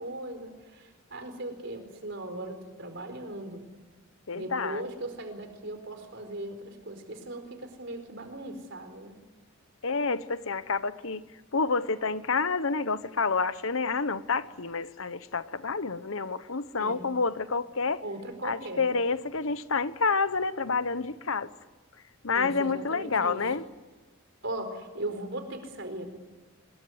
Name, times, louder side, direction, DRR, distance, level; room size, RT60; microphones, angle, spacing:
voice 1, 0.0-3.6 4.3-9.2 16.8-17.0 18.0-18.8 22.3-23.4 24.4-26.1, right 1 dB, 55° right, 4.6 m, -38 dB
voice 2, 4.3-4.8 9.8-11.2 11.5-18.0 18.4-21.5 22.2-23.6, left 4 dB, 65° left, 1.1 m, -29 dB
24.5 x 22.0 x 9.5 m
head